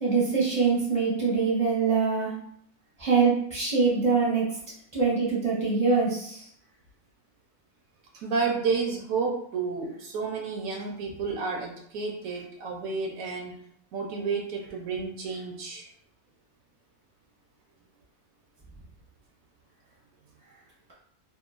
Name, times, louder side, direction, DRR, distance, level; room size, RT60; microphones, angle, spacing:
voice 1, 0.0-2.3 3.0-4.5 4.9-6.4, right 4 dB, 5° left, -7 dB, 0.7 m, -24 dB
voice 2, 8.1-13.5 13.9-15.8, right 4 dB, 75° right, 0 dB, 1.0 m, -31 dB
2.8 x 2.4 x 2.4 m, 0.66 s
omnidirectional pair, 1.6 m